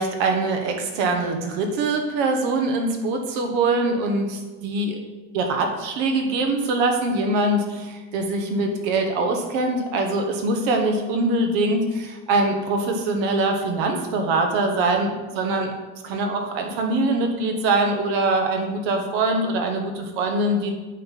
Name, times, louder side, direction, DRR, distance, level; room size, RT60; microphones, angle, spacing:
voice 1, 0.0-5.0 5.3-15.7 16.0-20.7, right 2 dB, 65° right, 3 dB, 1.6 m, -23 dB
8.4 x 4.3 x 5.6 m, 1.2 s
supercardioid pair, 115°, 48 cm